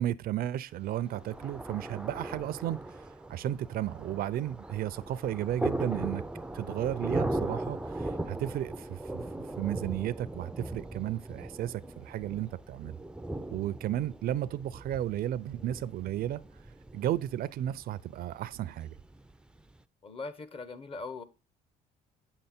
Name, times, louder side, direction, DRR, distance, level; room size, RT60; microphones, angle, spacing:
voice 1, 0.0-6.2 6.5-9.0 9.6-12.9 13.5-16.4 16.9-18.9, right 12 dB, 65° right, 0.5 m, -33 dB
Thunder, 0.8-19.8, right 1 dB, 5° right, 0.5 m, -39 dB
voice 2, 20.0-21.2, left 3 dB, 35° left, 1.1 m, -40 dB
8.9 x 6.7 x 4.3 m
cardioid pair, 110°, 17 cm